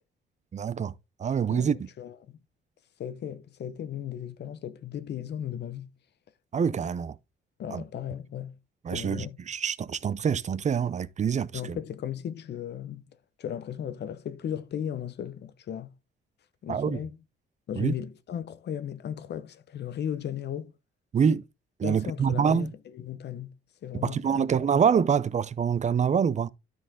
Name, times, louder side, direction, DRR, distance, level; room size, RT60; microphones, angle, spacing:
voice 1, 0.5-0.9 1.2-1.9 6.5-7.2 7.7-7.8 8.8-11.8 16.7-17.0 17.8-17.9 21.1-21.4 21.8-22.7 23.9-26.5, right 7 dB, 35° right, 0.6 m, -26 dB
voice 2, 1.5-2.4 3.0-5.9 7.6-8.6 8.9-9.4 11.5-15.9 16.6-17.2 17.7-20.7 21.8-24.7, left 9 dB, 60° left, 0.8 m, -36 dB
12.5 x 4.2 x 3.7 m
cardioid pair, 90°, 20 cm